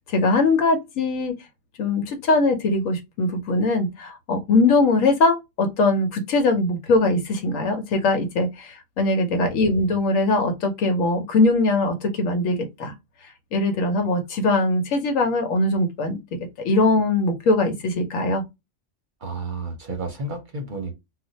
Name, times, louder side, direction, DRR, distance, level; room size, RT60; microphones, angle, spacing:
voice 1, 0.1-1.4 1.8-12.9 13.5-16.2 16.6-18.4, left 2 dB, 85° left, 1.1 m, -21 dB
voice 2, 9.5-10.0 19.2-20.9, right 2 dB, 50° right, 0.7 m, -32 dB
2.5 x 2.1 x 4.0 m
omnidirectional pair, 1.3 m